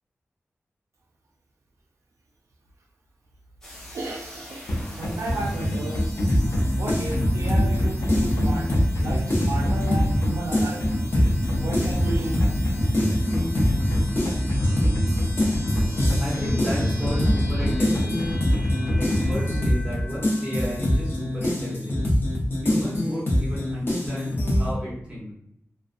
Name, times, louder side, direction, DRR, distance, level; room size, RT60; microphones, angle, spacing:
sound 1, 3.6-21.4, left 1 dB, 10° left, 0.7 m, -43 dB
voice 1, 3.9-6.1 6.8-10.9 11.6-12.5, right 2 dB, 75° right, -1 dB, 0.3 m, -33 dB
sound 2, 4.7-19.5, equal, 90° left, 0.5 m, -26 dB
sound 3, 6.3-10.2 10.5-24.7, left 1 dB, 50° left, 0.6 m, -24 dB
voice 2, 16.2-18.5 19.0-22.1 22.6-25.3, equal, 20° right, -7 dB, 0.8 m, -33 dB
2.5 x 2.2 x 2.4 m, 0.74 s
wide cardioid pair, 105°, 5 cm